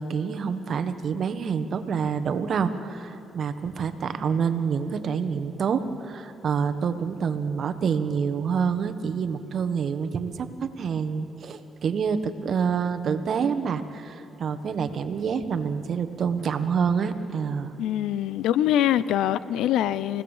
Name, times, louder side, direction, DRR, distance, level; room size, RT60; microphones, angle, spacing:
voice 1, 0.0-17.7, right 6 dB, 55° right, 10 dB, 1.3 m, -27 dB
voice 2, 17.8-20.2, left 11 dB, 85° left, 17 dB, 0.6 m, -24 dB
29.5 x 16.5 x 7.3 m, 2.9 s
cardioid pair, 90°, 0 cm